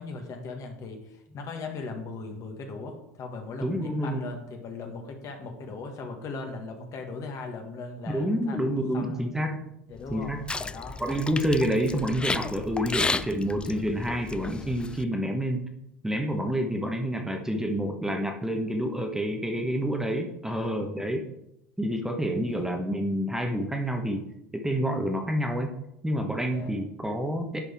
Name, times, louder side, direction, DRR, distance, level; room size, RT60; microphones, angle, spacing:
voice 1, 0.0-9.2 9.9-11.0 20.4-20.7 22.4-22.7 26.5-26.8, left 3 dB, 45° left, 4 dB, 1.7 m, -39 dB
voice 2, 3.6-4.2 8.1-9.8 10.1-10.4 11.0-15.7 16.0-21.3 21.8-24.2 24.5-25.8 26.0-27.6, equal, 5° right, 3 dB, 1.1 m, -28 dB
sound 1, 10.0-15.0, left 3 dB, 15° left, 0.4 m, -33 dB
10.0 x 5.4 x 3.6 m, 0.81 s
hypercardioid pair, 75°, 7 cm